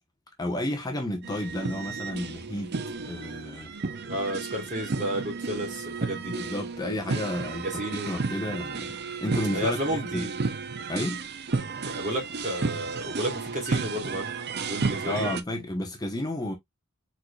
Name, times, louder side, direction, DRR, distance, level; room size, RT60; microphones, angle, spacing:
voice 1, 0.4-2.8 3.1-3.7 6.3-10.3 10.9-11.2 15.0-16.5, left 1 dB, 20° left, 1.0 m, -32 dB
sound 1, 1.2-15.4, right 4 dB, 55° right, 0.6 m, -33 dB
voice 2, 4.0-6.3 7.8-8.1 9.5-10.4 11.8-14.3 14.6-15.3, right 1 dB, 40° right, 2.7 m, -32 dB
4.7 x 4.5 x 2.3 m
head